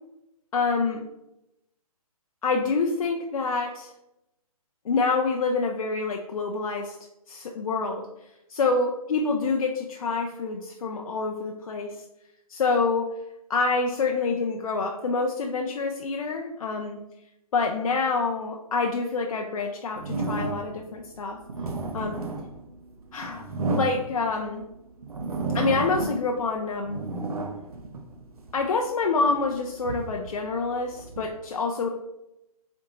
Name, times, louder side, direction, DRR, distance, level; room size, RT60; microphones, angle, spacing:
voice 1, 0.5-1.0 2.4-3.9 4.8-7.0 7.3-8.1 8.5-12.0 12.5-13.2 13.5-17.0 17.5-21.4 21.9-22.2 23.1-24.6 25.5-27.0 28.5-31.9, left 4 dB, 65° left, 2 dB, 0.5 m, -27 dB
sound 1, 20.0-20.8 21.3-24.5 25.0-26.4 26.7-28.6 29.2-31.3, right 3 dB, 70° right, 0.8 m, -32 dB
4.7 x 3.5 x 2.9 m, 0.89 s
figure-of-eight pair, 135°, 20 cm